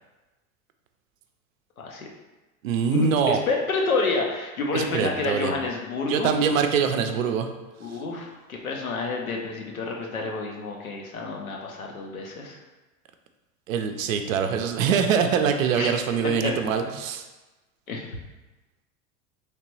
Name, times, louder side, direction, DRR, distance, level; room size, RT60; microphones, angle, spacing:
voice 1, 1.8-2.1 2.9-6.3 7.8-12.6 15.8-16.0 16.4-16.5 16.8-16.9 17.9-18.1, left 3 dB, 85° left, 0 dB, 0.7 m, -29 dB
voice 2, 2.6-3.4 4.7-5.6 6.0-7.5 7.9-8.0 13.7-17.2, right 7 dB, 70° right, 7 dB, 0.5 m, -24 dB
3.3 x 2.9 x 3.0 m, 1.1 s
figure-of-eight pair, 80°, 41 cm